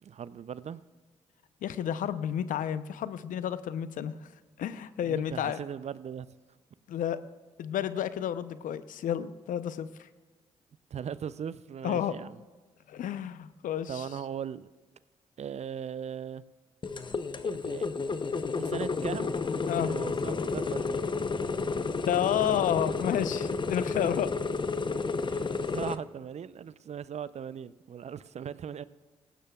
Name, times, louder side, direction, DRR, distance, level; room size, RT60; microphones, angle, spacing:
voice 1, 0.0-0.8 5.0-6.3 10.9-12.4 13.9-14.7 15.4-16.4 17.4-17.9 18.6-19.3 19.8-21.0 24.0-24.1 25.3-28.8, right 8 dB, 50° right, 0.5 m, -39 dB
voice 2, 1.6-4.1 4.6-5.6 6.9-7.2 7.6-10.1 11.8-12.1 12.9-14.0 19.7-20.0 22.1-24.3, left 10 dB, 70° left, 0.6 m, -31 dB
sound 1, 16.8-26.0, left 4 dB, 35° left, 0.7 m, -31 dB
18.5 x 15.0 x 2.3 m
hypercardioid pair, 40°, 14 cm